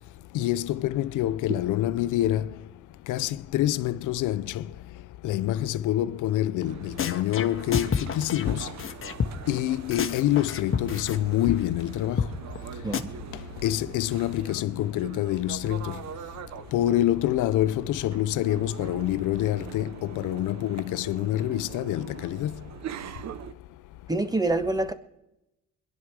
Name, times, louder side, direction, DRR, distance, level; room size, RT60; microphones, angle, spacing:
voice 1, 0.3-2.5 3.1-4.6 5.2-8.7 9.5-12.3 13.6-16.0 16.7-22.5, left 13 dB, 85° left, 0.6 m, -26 dB
sound 1, 6.6-6.7 7.0-9.6 9.9-11.2 11.5-11.6 11.8-11.9 12.2-12.3 12.6-12.7 12.9-13.0, left 7 dB, 45° left, 1.2 m, -29 dB
sound 2, 6.6-23.5, right 9 dB, 65° right, 0.9 m, -43 dB
voice 2, 24.1-24.9, right 2 dB, 10° right, 1.4 m, -26 dB
23.5 x 11.0 x 4.8 m
cardioid pair, 90°, 30 cm